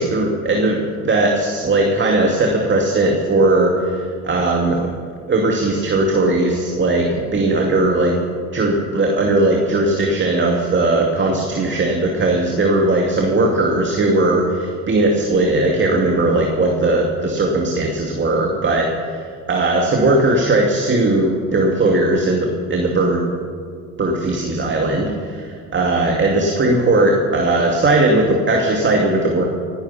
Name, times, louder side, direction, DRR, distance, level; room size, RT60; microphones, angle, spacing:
voice 1, 0.0-4.9 5.3-8.2 8.5-23.3 24.0-29.5, right 2 dB, 30° right, 1 dB, 2.2 m, -18 dB
18.0 x 11.5 x 5.8 m, 2.1 s
supercardioid pair, 90°, 41 cm